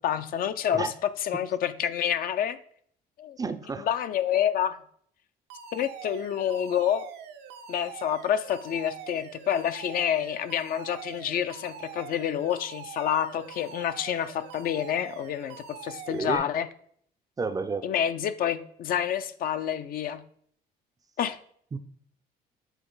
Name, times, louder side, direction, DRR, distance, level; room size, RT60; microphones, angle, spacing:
voice 1, 0.0-2.6 3.2-3.4 3.8-4.8 5.7-7.1 7.7-16.7 17.8-20.2 21.2-21.4, left 9 dB, 60° left, 0.5 m, -28 dB
voice 2, 3.4-3.9 16.1-16.5 17.4-17.9 21.7-21.8, right 4 dB, 20° right, 0.4 m, -30 dB
Alarm, 5.5-16.4, right 8 dB, 80° right, 0.7 m, -44 dB
8.1 x 3.8 x 3.9 m
cardioid pair, 110°, 17 cm